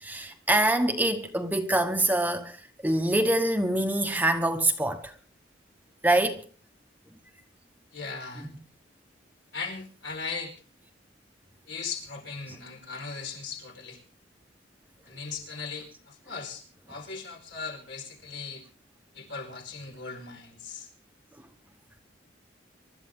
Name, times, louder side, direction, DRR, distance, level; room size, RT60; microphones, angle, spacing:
voice 1, 0.0-2.6 2.8-5.1 6.0-6.4 8.3-8.6, right 1 dB, 10° right, 1.1 m, -25 dB
voice 2, 7.9-8.5 9.5-10.5 11.7-14.0 15.0-18.6 19.1-20.9, left 4 dB, 70° left, 5.0 m, -38 dB
23.5 x 12.5 x 3.7 m
head